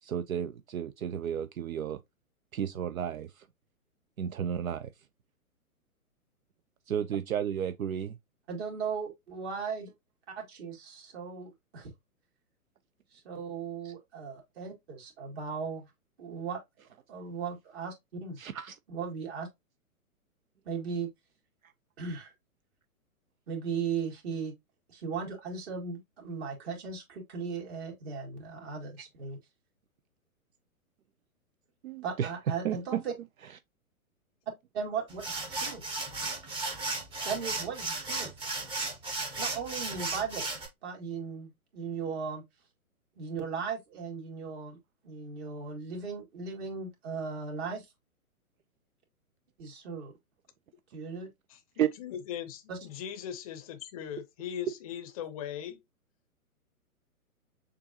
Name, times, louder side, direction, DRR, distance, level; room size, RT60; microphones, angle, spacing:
voice 1, 0.0-2.0 2.5-3.5 4.2-4.9 6.9-8.2 13.8-13.9 18.4-18.8 21.6-21.7 31.8-32.3 32.6-33.0 33.4-33.6 51.8-51.9, right 9 dB, 70° right, 0.5 m, -33 dB
voice 2, 8.5-9.9 10.4-11.9 13.1-15.9 16.2-16.6 17.1-18.4 18.9-19.5 20.7-21.1 22.0-22.3 23.5-24.5 24.9-29.4 32.0-33.1 34.7-35.8 37.2-38.3 39.4-40.5 40.8-42.4 43.2-44.8 45.0-47.9 49.6-50.1 50.9-51.3 52.7-52.8, right 5 dB, 45° right, 2.3 m, -37 dB
sound 1, 35.1-40.7, right 3 dB, 10° right, 0.8 m, -35 dB
voice 3, 51.5-55.8, left 9 dB, 25° left, 0.6 m, -39 dB
6.6 x 2.6 x 2.7 m
figure-of-eight pair, 120°, 44 cm